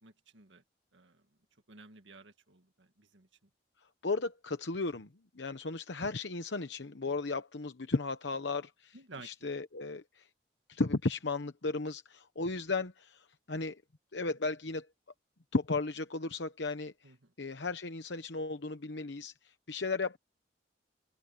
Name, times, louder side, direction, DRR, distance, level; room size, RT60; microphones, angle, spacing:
voice 1, 0.0-0.6 0.9-1.2 1.7-3.3 8.9-9.5 17.0-17.2, right 3 dB, 80° right, 1.9 m, -53 dB
voice 2, 4.0-5.1 5.3-9.0 9.2-10.3 10.7-13.8 14.1-14.9 15.5-16.9 17.4-20.2, left 3 dB, 70° left, 1.0 m, -35 dB
open air
head